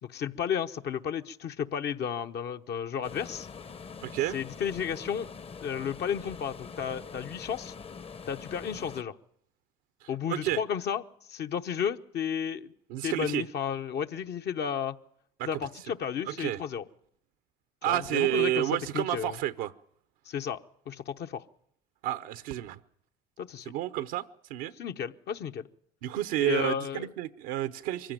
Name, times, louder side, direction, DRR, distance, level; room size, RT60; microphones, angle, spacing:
voice 1, 0.0-3.5 4.3-5.3 5.6-7.7 8.3-9.2 10.1-11.0 11.3-12.7 13.0-15.0 15.5-16.8 17.9-19.4 20.3-20.6 20.9-21.4 23.4-23.7 24.8-25.7 26.4-27.1, left 8 dB, 55° left, 7 dB, 1.0 m, -33 dB
sound 1, 3.0-9.0, left 5 dB, 30° left, 0.8 m, -44 dB
voice 2, 4.0-4.4 10.0-10.6 12.9-13.4 15.4-15.5 16.3-16.6 17.8-19.7 22.0-22.8 23.7-24.2 24.5-24.7 26.0-28.1, right 14 dB, 80° right, 13 dB, 0.8 m, -30 dB
23.5 x 15.5 x 9.1 m, 0.69 s
supercardioid pair, 70°, 20 cm